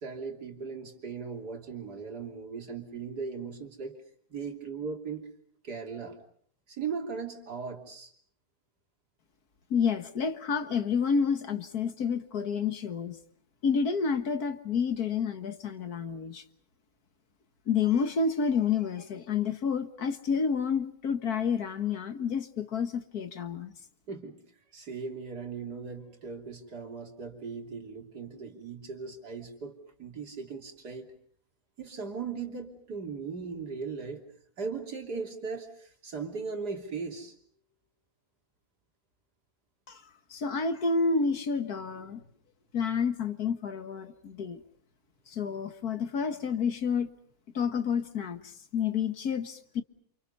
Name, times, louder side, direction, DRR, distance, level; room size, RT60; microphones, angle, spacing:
voice 1, 0.0-4.0 4.3-5.2 5.6-6.2 6.7-8.1 24.1-24.4 24.7-31.1 31.8-34.2 34.6-37.3, right 5 dB, 80° right, 3.6 m, -38 dB
voice 2, 9.7-13.2 13.6-16.4 17.7-23.7 39.9-40.0 40.3-42.2 42.7-44.6 45.3-47.1 47.5-49.8, left 6 dB, 70° left, 2.0 m, -29 dB
29.0 x 28.0 x 5.5 m
omnidirectional pair, 1.7 m